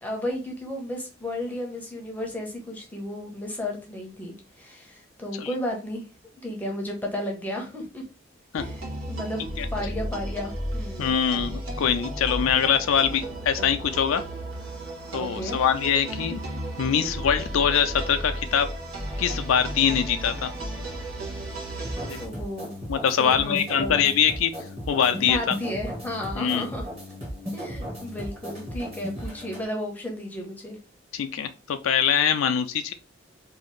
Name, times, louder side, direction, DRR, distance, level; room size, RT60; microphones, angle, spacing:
voice 1, 0.0-6.1 6.4-8.0 8.5-9.4 9.7-11.1 15.2-15.6 21.7-22.7 23.2-24.1 25.2-26.9 27.5-30.8, left 1 dB, 10° left, 0 dB, 0.6 m, -33 dB
sound 1, 8.6-22.3, right 1 dB, 90° right, 1.0 m, -34 dB
voice 2, 11.0-14.2 15.1-16.4 16.8-18.7 19.2-20.5 22.0-22.2 22.9-24.5 24.9-25.5 26.4-26.7 31.1-32.9, left 8 dB, 80° left, 8 dB, 0.4 m, -23 dB
sound 2, 21.8-29.6, equal, 30° right, 1.0 m, -36 dB
2.7 x 2.5 x 3.0 m, 0.34 s
head